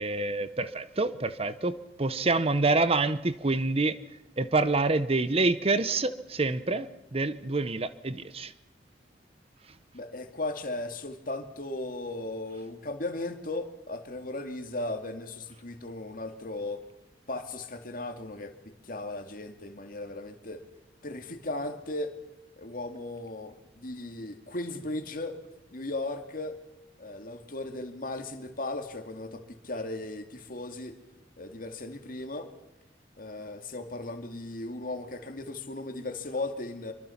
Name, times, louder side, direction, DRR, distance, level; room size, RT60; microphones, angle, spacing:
voice 1, 0.0-4.0 4.4-8.5, right 3 dB, 35° right, 0.8 m, -27 dB
voice 2, 9.9-16.8 17.3-20.6 21.0-22.1 22.6-25.4 25.7-26.6 27.0-31.0 31.4-32.5 33.2-36.9, left 2 dB, 50° left, 2.4 m, -36 dB
25.5 x 24.0 x 5.9 m
head